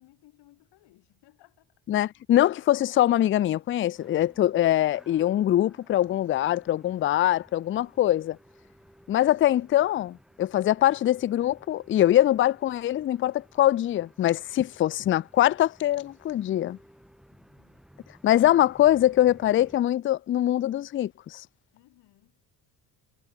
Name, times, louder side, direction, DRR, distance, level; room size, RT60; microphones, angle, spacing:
voice 1, 0.0-2.0 17.3-17.8 21.7-22.4, left 17 dB, 70° left, 5.1 m, -60 dB
voice 2, 1.9-8.4 9.1-16.8 18.2-21.4, left 13 dB, 30° left, 0.4 m, -23 dB
sound 1, 3.1-19.8, equal, ahead, 5.0 m, -57 dB
hypercardioid pair, 60°, 42 cm